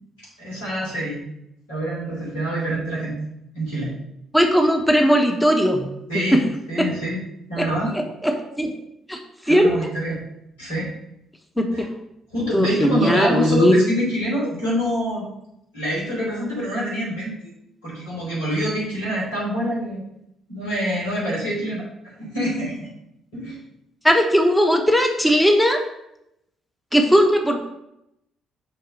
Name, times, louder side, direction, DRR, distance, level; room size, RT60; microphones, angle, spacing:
voice 1, 0.2-1.2 1.7-3.2 3.5-3.9 6.1-6.4 6.7-7.2 7.5-7.9 9.4-10.2 10.6-10.9 11.7-11.9 12.3-15.3 15.7-17.5 17.8-20.0 20.5-21.9 22.2-22.9 23.3-23.6, equal, 80° left, -7 dB, 3.3 m, -25 dB
voice 2, 4.3-5.9 6.1-6.4 6.8-6.9 7.6-7.7 7.9-8.7 9.1-9.2 9.5-9.7 11.6-11.9 12.5-13.8 24.0-25.8 26.9-27.7, equal, 5° left, 4 dB, 1.0 m, -18 dB
6.1 x 4.5 x 6.4 m, 0.82 s
figure-of-eight pair, 45°, 0 cm